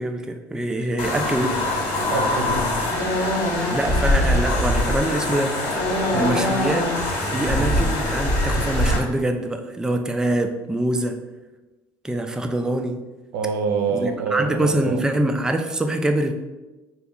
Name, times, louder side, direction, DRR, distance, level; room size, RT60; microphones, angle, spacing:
voice 1, 0.0-1.6 3.7-5.6 6.1-11.2 12.0-13.0 13.9-16.3, right 1 dB, 5° right, 5 dB, 0.3 m, -24 dB
sound 1, 1.0-9.0, left 1 dB, 55° left, 1.2 m, -22 dB
voice 2, 2.1-2.7 3.1-3.4 6.1-6.4 13.3-15.0, right 5 dB, 75° right, 4 dB, 0.5 m, -26 dB
3.2 x 2.3 x 3.6 m, 1.1 s
supercardioid pair, 80°, 10 cm